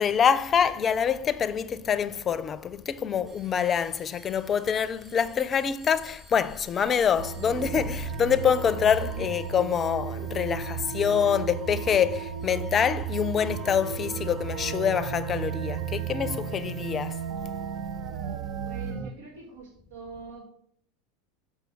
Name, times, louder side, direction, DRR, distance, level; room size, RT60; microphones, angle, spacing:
voice 1, 0.0-17.3, left 7 dB, 30° left, 0.6 m, -26 dB
sound 1, 3.3-14.9, right 2 dB, 15° right, 3.3 m, -56 dB
sound 2, 7.2-19.1, right 7 dB, 55° right, 0.7 m, -34 dB
voice 2, 18.6-20.5, right 3 dB, 80° right, 1.8 m, -43 dB
6.8 x 5.6 x 6.2 m
hypercardioid pair, 95°, 0 cm